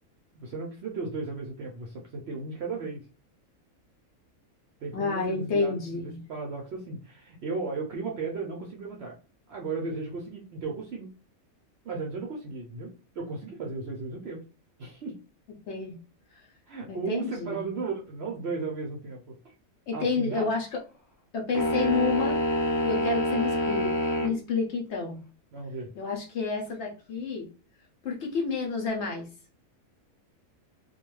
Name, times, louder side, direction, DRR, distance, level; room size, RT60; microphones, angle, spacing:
voice 1, 0.3-3.0 4.8-9.2 9.5-11.1 11.8-14.4 14.8-15.2 16.7-19.2 19.9-20.5 25.5-25.9, right 4 dB, 65° right, -1 dB, 0.6 m, -35 dB
voice 2, 4.9-6.2 15.7-16.0 16.3-16.4 16.9-17.6 19.9-20.8 21.3-22.4 22.8-25.2 26.0-27.5 28.0-29.3, left 4 dB, 65° left, 0 dB, 0.7 m, -30 dB
sound 1, 21.5-24.4, left 1 dB, 30° left, 0.3 m, -26 dB
2.3 x 2.2 x 3.0 m, 0.37 s
omnidirectional pair, 1.5 m